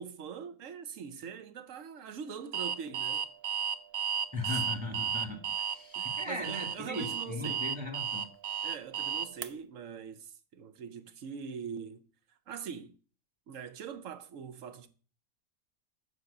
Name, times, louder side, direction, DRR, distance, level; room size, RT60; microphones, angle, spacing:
voice 1, 0.0-3.3 4.5-4.6 5.9-7.7 8.6-12.0 12.5-12.9 13.5-14.9, right 7 dB, 80° right, 1.2 m, -43 dB
Alarm, 2.5-9.5, right 8 dB, 60° right, 0.8 m, -33 dB
voice 2, 4.3-8.3, left 2 dB, 5° right, 1.5 m, -38 dB
7.3 x 4.8 x 6.7 m
omnidirectional pair, 1.3 m